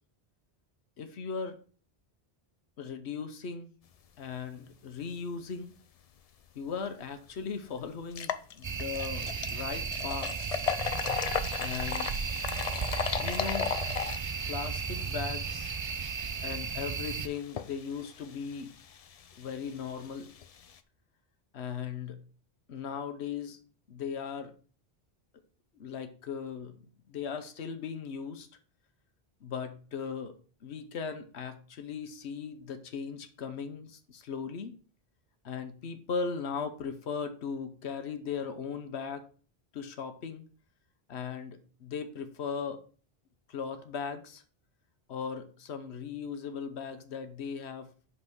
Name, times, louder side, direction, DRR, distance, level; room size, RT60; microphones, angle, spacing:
voice 1, 1.0-1.6 2.8-3.7 4.2-5.7 6.5-10.5 11.6-12.1 13.2-13.8 14.5-15.7 16.4-18.7 19.4-20.3 21.5-22.2 22.7-23.6 23.9-24.5 25.8-26.8 27.1-28.5 29.4-34.7 35.4-39.2 39.7-40.4 41.1-42.8 43.5-44.4 45.1-47.9, left 6 dB, 90° left, 9 dB, 1.2 m, -38 dB
sound 1, 6.8-6.9 7.3-7.4 8.0-20.8, left 7 dB, 50° left, 0.5 m, -37 dB
sound 2, 8.6-17.3, right 6 dB, 40° right, 0.4 m, -35 dB
5.5 x 5.5 x 6.2 m, 0.40 s
omnidirectional pair, 1.1 m